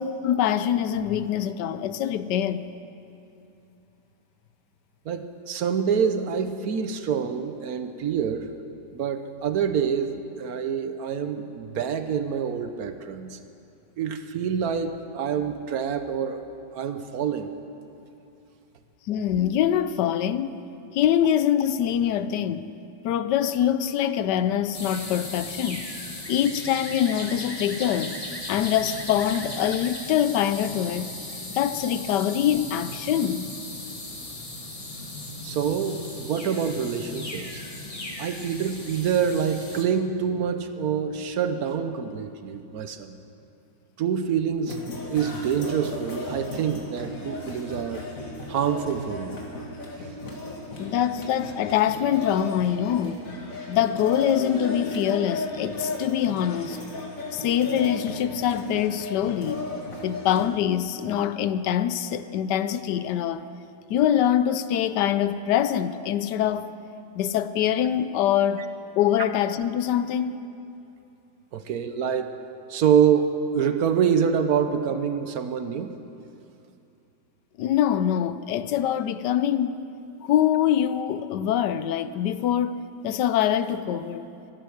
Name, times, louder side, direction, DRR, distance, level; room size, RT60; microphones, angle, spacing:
voice 1, 0.2-2.7 19.1-20.5 20.9-22.7 23.0-25.9 26.3-28.2 28.5-31.1 31.5-33.5 50.8-53.2 53.7-56.8 57.3-59.8 60.0-63.5 63.9-66.7 67.1-68.6 69.0-70.4 77.6-79.7 80.2-84.3, left 10 dB, 85° left, 1.2 m, -24 dB
voice 2, 5.1-8.5 8.9-13.4 14.0-16.4 16.7-17.5 35.4-37.6 38.2-43.2 44.0-44.8 45.1-48.1 48.5-49.4 71.5-72.3 72.7-75.9, right 7 dB, 65° right, 1.2 m, -26 dB
sound 1, 24.7-39.8, left 2 dB, 20° left, 1.3 m, -37 dB
sound 2, 44.7-60.4, left 2 dB, 55° left, 2.3 m, -35 dB
24.0 x 9.2 x 6.4 m
omnidirectional pair, 1.8 m